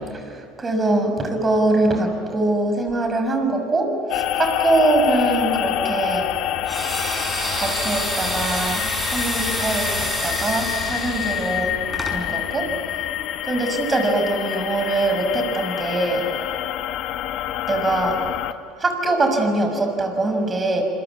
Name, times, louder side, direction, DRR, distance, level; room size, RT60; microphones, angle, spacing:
voice 1, 0.6-6.3 7.5-8.8 9.1-11.7 12.0-12.7 13.4-16.2 17.7-18.2 18.8-20.8, right 2 dB, 25° right, 5 dB, 6.5 m, -22 dB
sound 1, 4.1-18.5, left 12 dB, 65° left, 1.5 m, -27 dB
sound 2, 6.7-12.2, equal, 5° right, 6.4 m, -28 dB
27.0 x 23.5 x 8.5 m, 2.5 s
supercardioid pair, 100°, 0 cm